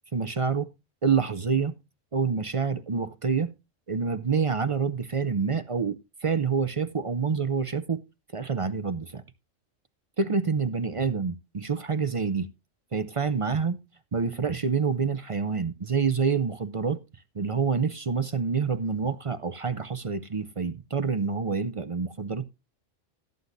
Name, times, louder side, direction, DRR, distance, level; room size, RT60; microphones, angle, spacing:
voice 1, 0.1-0.7 1.0-1.7 2.1-3.5 3.9-8.0 8.3-9.2 10.2-12.5 12.9-13.8 14.1-17.0 17.4-22.4, right 5 dB, 40° right, 0.5 m, -27 dB
17.0 x 8.0 x 2.6 m
omnidirectional pair, 1.3 m